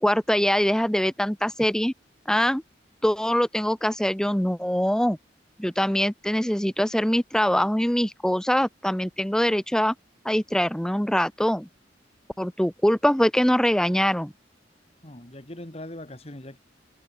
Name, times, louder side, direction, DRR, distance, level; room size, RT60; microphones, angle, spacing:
voice 1, 0.0-1.9 2.3-2.6 3.0-5.2 5.6-9.9 10.2-11.7 12.4-14.3, equal, 5° left, 0.8 m, -23 dB
voice 2, 15.0-16.6, left 1 dB, 35° left, 1.9 m, -40 dB
head